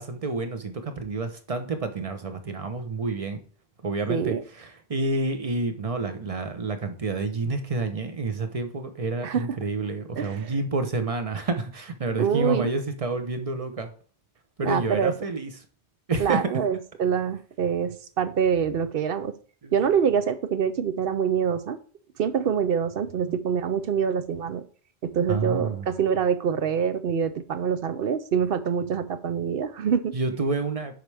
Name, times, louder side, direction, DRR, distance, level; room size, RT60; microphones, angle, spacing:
voice 1, 0.0-3.4 3.8-13.9 14.6-15.5 16.1-16.4 19.6-19.7 25.3-25.9 30.1-31.0, right 3 dB, 35° right, 0.8 m, -29 dB
voice 2, 4.1-4.4 9.2-9.5 10.2-10.5 12.2-12.7 14.6-15.1 16.2-19.4 19.7-21.8 22.2-24.6 25.0-30.2, right 7 dB, 70° right, 0.8 m, -25 dB
7.8 x 5.4 x 3.4 m
omnidirectional pair, 1.0 m